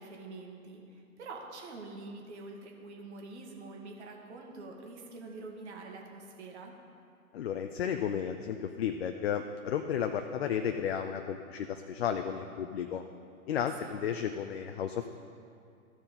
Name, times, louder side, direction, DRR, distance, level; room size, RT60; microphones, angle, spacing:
voice 1, 0.0-6.7 13.6-13.9, right 3 dB, 50° right, 1 dB, 1.6 m, -46 dB
voice 2, 7.3-13.0 13.5-15.1, left 8 dB, 45° left, 6 dB, 0.5 m, -33 dB
13.5 x 4.5 x 5.3 m, 2.4 s
figure-of-eight pair, 120°, 43 cm